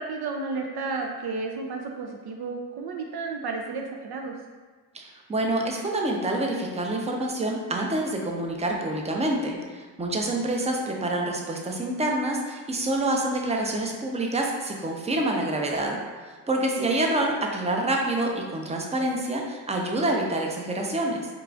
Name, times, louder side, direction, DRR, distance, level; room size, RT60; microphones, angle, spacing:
voice 1, 0.0-4.3 16.8-17.0, right 3 dB, 60° right, 2 dB, 0.5 m, -32 dB
voice 2, 4.9-21.3, right 1 dB, 15° right, 1 dB, 0.6 m, -27 dB
4.7 x 2.5 x 2.4 m, 1.4 s
supercardioid pair, 50°, 45 cm